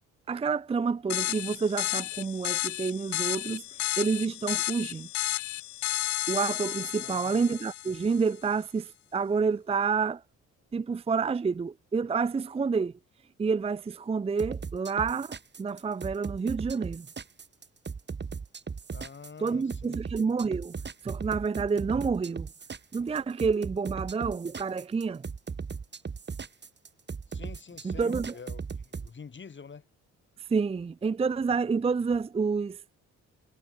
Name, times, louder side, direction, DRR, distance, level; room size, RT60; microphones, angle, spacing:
voice 1, 0.3-3.6 4.0-5.1 6.3-10.2 10.7-12.9 13.4-17.1 19.4-20.8 21.0-22.5 22.9-25.2 27.8-28.3 30.5-32.8, right 5 dB, 20° right, 0.5 m, -29 dB
sound 1, 1.1-8.3, left 17 dB, 70° left, 0.5 m, -32 dB
voice 2, 7.0-7.4 18.9-20.0 27.3-29.9, left 5 dB, 40° left, 7.8 m, -47 dB
sound 2, 14.4-29.1, right 5 dB, 35° right, 4.8 m, -37 dB
cardioid pair, 90°, 30 cm